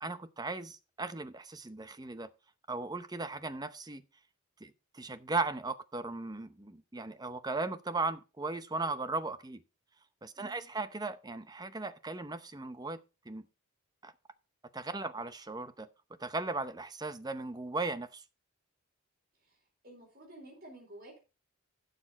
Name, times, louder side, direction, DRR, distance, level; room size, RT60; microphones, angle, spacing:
voice 1, 0.0-2.3 2.7-4.0 4.6-9.6 10.2-13.0 13.3-13.5 14.0-14.1 14.7-15.9 16.2-18.2, right 3 dB, 20° right, 0.7 m, -37 dB
voice 2, 10.4-10.7 19.4-19.6 19.8-21.2, right 1 dB, 45° right, 4.3 m, -52 dB
12.0 x 6.8 x 4.2 m
head